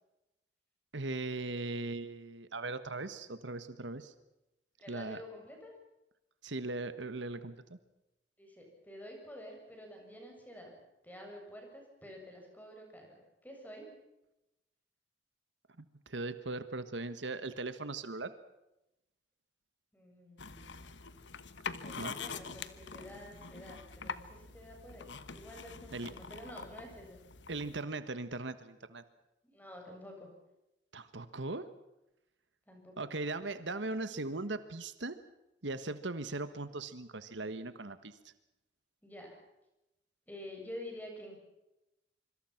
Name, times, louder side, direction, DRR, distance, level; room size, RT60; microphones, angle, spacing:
voice 1, 0.9-4.1 4.9-5.2 6.4-7.8 15.8-18.3 22.0-22.1 25.9-26.1 27.5-29.0 30.9-31.7 33.0-35.2 35.6-38.2, right 2 dB, 75° right, 12 dB, 1.5 m, -39 dB
voice 2, 4.8-5.7 8.4-10.7 11.0-13.9 19.9-20.9 21.8-27.2 29.4-30.3 32.7-33.1 39.0-39.4 40.3-41.4, left 1 dB, 10° left, 1 dB, 7.3 m, -49 dB
sound 1, 20.4-27.8, left 5 dB, 75° left, 1.3 m, -45 dB
26.0 x 25.5 x 5.9 m, 0.92 s
head